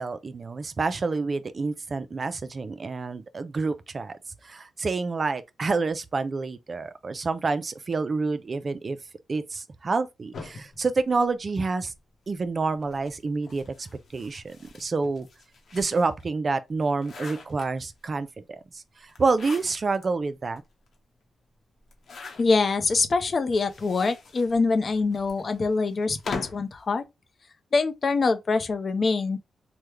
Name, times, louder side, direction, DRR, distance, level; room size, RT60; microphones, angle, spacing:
voice 1, 0.0-4.2 4.4-9.0 9.3-11.9 12.3-15.3 15.7-20.6, right 4 dB, 45° right, 0.4 m, -28 dB
sound 1, 10.3-11.9 12.8-16.2 16.7-18.1 19.1-20.1 20.5-20.6 20.9-21.0 21.8-22.8 23.5-26.7, left 4 dB, 70° left, 0.9 m, -42 dB
voice 2, 22.4-27.0 27.7-29.4, left 4 dB, 50° left, 0.6 m, -24 dB
3.4 x 2.2 x 3.1 m
cardioid pair, 65°, 0 cm